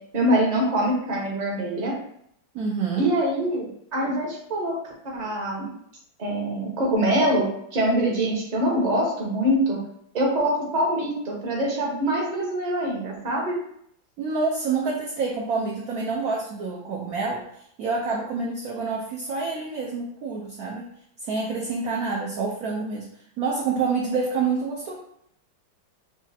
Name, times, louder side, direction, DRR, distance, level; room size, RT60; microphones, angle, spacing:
voice 1, 0.1-1.9 3.0-4.8 5.0-5.7 6.2-9.8 10.1-13.6, right 1 dB, 35° right, -3 dB, 0.7 m, -24 dB
voice 2, 2.5-3.1 14.2-17.4 17.8-20.8 21.2-23.1 23.4-24.9, right 4 dB, 65° right, -3 dB, 0.9 m, -27 dB
6.1 x 2.4 x 2.7 m, 0.69 s
omnidirectional pair, 2.1 m